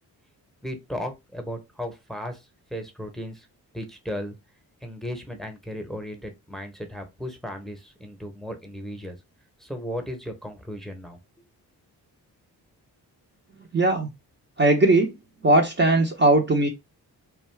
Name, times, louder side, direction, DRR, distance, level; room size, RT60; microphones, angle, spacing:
voice 1, 0.6-2.4 2.7-3.5 3.7-4.4 4.8-9.2 9.6-11.2, equal, ahead, 0.8 m, -35 dB
voice 2, 13.6-14.1 14.6-15.2 15.4-16.7, right 2 dB, 25° right, 0.7 m, -19 dB
2.5 x 2.3 x 3.2 m
supercardioid pair, 50°, 41 cm